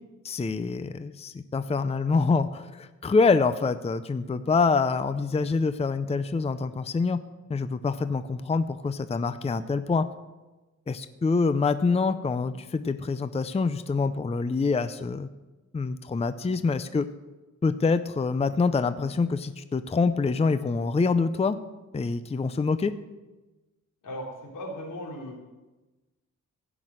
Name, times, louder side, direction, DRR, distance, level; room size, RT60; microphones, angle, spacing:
voice 1, 0.2-7.2 7.5-10.1 10.9-15.3 15.7-17.1 17.6-21.6 21.9-22.9, left 4 dB, 20° left, 12 dB, 0.5 m, -26 dB
voice 2, 24.0-25.3, equal, 85° left, -2 dB, 3.5 m, -37 dB
16.0 x 6.1 x 7.5 m, 1.1 s
wide cardioid pair, 110°, 31 cm